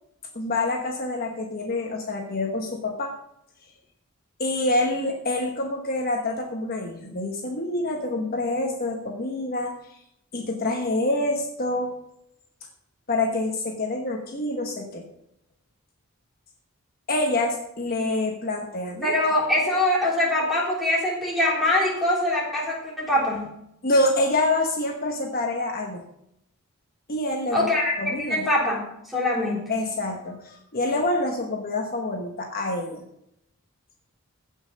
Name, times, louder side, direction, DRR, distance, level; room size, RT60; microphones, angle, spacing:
voice 1, 0.3-3.1 4.4-9.7 10.3-12.0 13.1-15.1 17.1-19.1 23.8-26.1 27.1-27.7 28.0-28.5 29.7-33.0, left 2 dB, 45° left, 1 dB, 1.2 m, -26 dB
voice 2, 19.0-23.5 27.5-27.9 28.2-28.8 29.1-29.7, left 1 dB, ahead, -4 dB, 3.4 m, -23 dB
16.0 x 5.6 x 5.2 m, 0.77 s
head